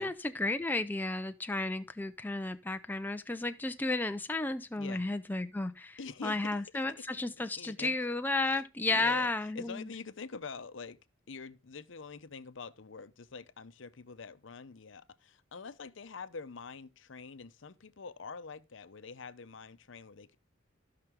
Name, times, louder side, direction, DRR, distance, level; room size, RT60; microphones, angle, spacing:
voice 1, 0.0-9.9, left 2 dB, 10° left, 0.4 m, -33 dB
voice 2, 6.0-6.4 7.6-8.0 8.5-8.6 8.9-11.0 11.3-20.4, left 4 dB, 70° left, 0.7 m, -45 dB
15.0 x 5.9 x 3.6 m
head